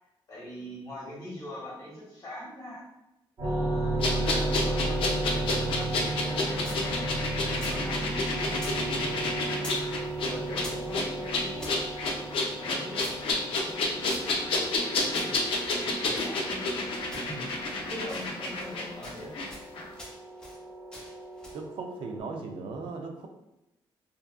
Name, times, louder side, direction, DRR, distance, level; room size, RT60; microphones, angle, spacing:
voice 1, 0.3-2.8 3.4-7.0 7.5-9.2 10.2-11.7 12.5-13.0 13.4-14.4 15.2-15.4 15.8-16.6 17.1-19.3, equal, 40° left, -5 dB, 1.0 m, -42 dB
sound 1, 3.4-22.2, right 2 dB, 50° right, 1.3 m, -34 dB
sound 2, 4.0-19.5 19.7-19.9, left 2 dB, 75° left, 0.5 m, -30 dB
sound 3, 4.2-6.9 7.2-8.8 9.0-9.9 10.2-11.8 12.3-14.8 15.1-16.8 17.1-17.7 18.0-18.8 19.0-19.7 20.0-20.6 20.9-21.7, equal, 10° left, 0.6 m, -47 dB
voice 2, 21.5-23.3, right 4 dB, 75° right, 3 dB, 0.4 m, -37 dB
2.6 x 2.3 x 2.3 m, 0.93 s
cardioid pair, 145°, 9 cm